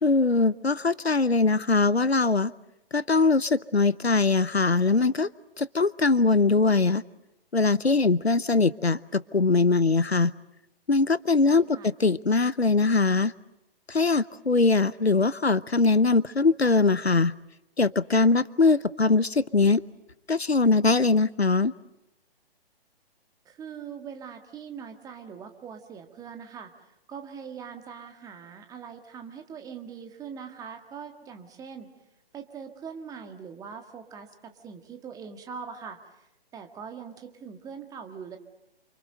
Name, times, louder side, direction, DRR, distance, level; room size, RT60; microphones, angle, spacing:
voice 1, 0.0-2.5 2.9-5.3 5.6-7.0 7.5-10.3 10.9-13.3 13.9-17.3 17.8-19.8 20.3-21.7, left 3 dB, 90° left, 18 dB, 1.0 m, -22 dB
voice 2, 11.5-11.9 23.5-26.7 27.1-31.9 32.3-36.0 36.5-38.4, right 6 dB, 10° right, 5 dB, 1.7 m, -42 dB
28.0 x 26.0 x 6.7 m, 0.91 s
figure-of-eight pair, 130°, 31 cm